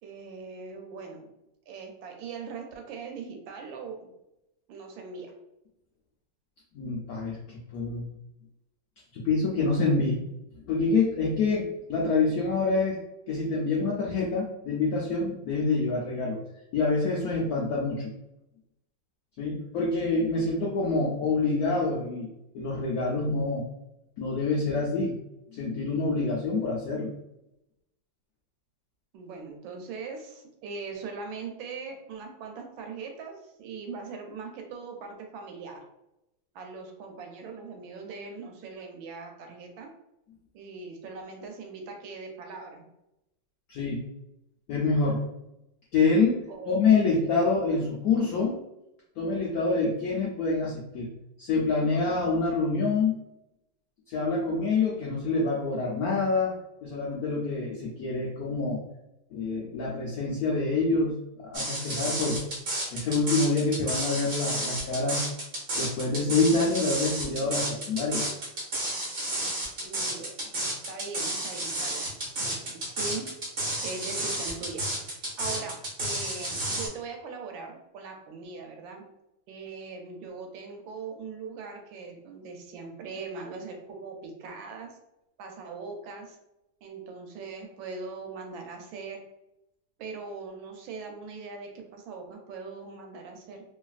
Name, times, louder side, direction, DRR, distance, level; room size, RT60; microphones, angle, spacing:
voice 1, 0.0-1.3 1.7-4.1 4.7-5.3 9.9-10.3 21.1-21.3 29.1-35.8 36.5-39.9 40.5-42.8 46.5-46.9 47.1-47.3 69.8-70.5 70.9-72.1 72.4-73.3 73.8-74.8 75.2-79.0 79.5-85.0 85.4-86.4 86.8-89.2 90.0-93.6, right 4 dB, 80° right, 3 dB, 1.3 m, -40 dB
voice 2, 6.7-7.4 7.7-8.0 9.1-10.1 10.7-13.0 13.3-16.4 16.7-18.1 19.4-22.3 22.5-23.7 24.2-25.1 25.5-27.1 43.7-44.0 44.7-45.3 45.9-48.6 49.2-51.1 51.4-53.2 54.1-56.6 56.8-58.8 59.3-62.4 62.9-65.2 65.7-68.2, left 3 dB, 80° left, -4 dB, 0.8 m, -26 dB
sound 1, 61.5-76.9, right 1 dB, 50° right, 0.6 m, -31 dB
3.1 x 2.5 x 2.3 m, 0.87 s
omnidirectional pair, 2.1 m